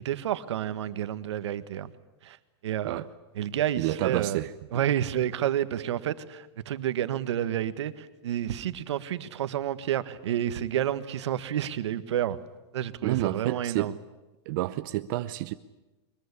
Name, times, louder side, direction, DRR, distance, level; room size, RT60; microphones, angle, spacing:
voice 1, 0.0-1.9 2.2-2.4 2.6-3.0 3.3-4.4 4.7-12.4 12.7-13.9, right 11 dB, 80° right, 1.6 m, -30 dB
voice 2, 3.8-4.5 13.0-13.9 14.5-15.5, right 16 dB, 45° right, 0.8 m, -29 dB
23.0 x 22.0 x 9.9 m
supercardioid pair, 160°, 14 cm